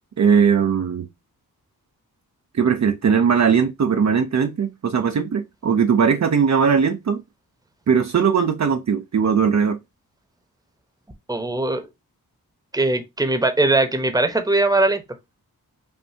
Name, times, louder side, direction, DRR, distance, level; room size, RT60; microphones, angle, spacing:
voice 1, 0.2-1.1 2.5-7.2 7.9-9.8, right 6 dB, 50° right, 0.6 m, -19 dB
voice 2, 11.3-11.8 12.7-15.0, right 2 dB, 10° right, 0.9 m, -20 dB
5.6 x 2.7 x 2.7 m
wide cardioid pair, 105°, 36 cm